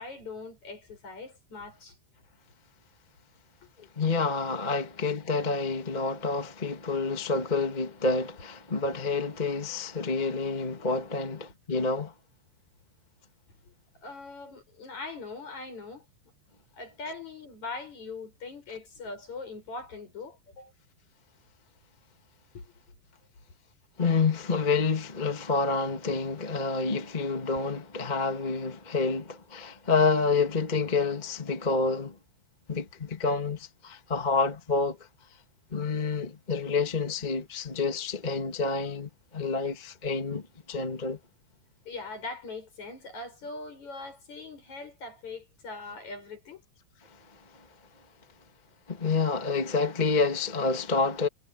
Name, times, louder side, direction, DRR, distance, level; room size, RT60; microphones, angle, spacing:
voice 1, 0.0-2.0 3.6-3.7 13.7-13.8 14.0-16.1 16.7-20.7 22.5-22.7 41.9-46.6, left 3 dB, 40° left, 8.7 m, -41 dB
voice 2, 3.8-12.1 24.0-32.1 32.7-35.0 35.7-41.2 48.9-51.3, left 4 dB, 20° left, 1.2 m, -28 dB
omnidirectional pair, 4.9 m